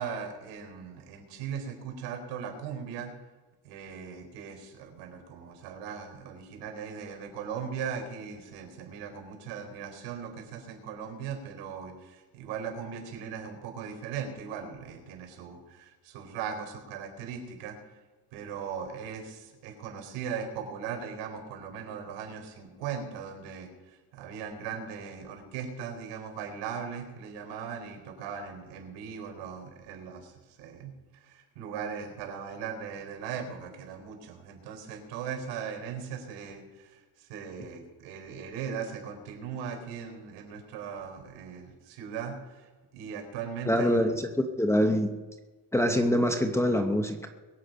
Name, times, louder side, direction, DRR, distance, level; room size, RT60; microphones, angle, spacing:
voice 1, 0.0-3.1 3.6-17.8 18.3-42.7 42.9-44.1, right 7 dB, 80° right, 3 dB, 4.1 m, -39 dB
voice 2, 43.7-45.1 45.7-47.3, equal, 5° left, 3 dB, 0.7 m, -25 dB
22.0 x 8.3 x 5.3 m, 1.3 s
cardioid pair, 160°, 43 cm